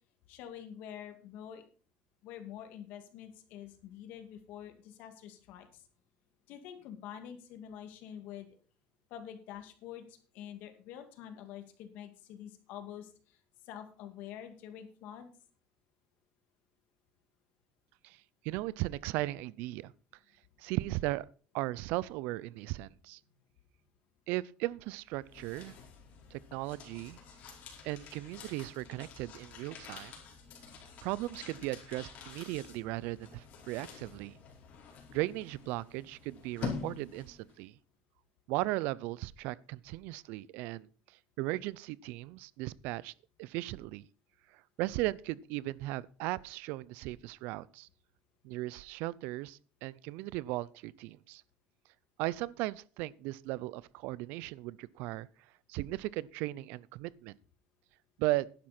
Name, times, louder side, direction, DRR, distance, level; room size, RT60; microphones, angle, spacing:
voice 1, 0.3-1.6 2.2-5.8 6.5-8.5 9.1-13.4 13.6-15.3, left 10 dB, 70° left, 2.3 m, -47 dB
voice 2, 18.4-19.9 20.6-21.3 21.5-23.2 24.3-25.7 26.3-27.2 27.8-30.2 31.0-34.4 35.1-37.7 38.5-40.9 41.4-43.1 43.4-44.1 44.5-47.9 48.4-51.4 52.2-55.3 55.7-57.3 58.2-58.5, right 18 dB, 75° right, 0.5 m, -37 dB
sound 1, 25.0-37.5, left 6 dB, 50° left, 4.6 m, -47 dB
11.5 x 10.5 x 4.4 m
cardioid pair, 130°, 3 cm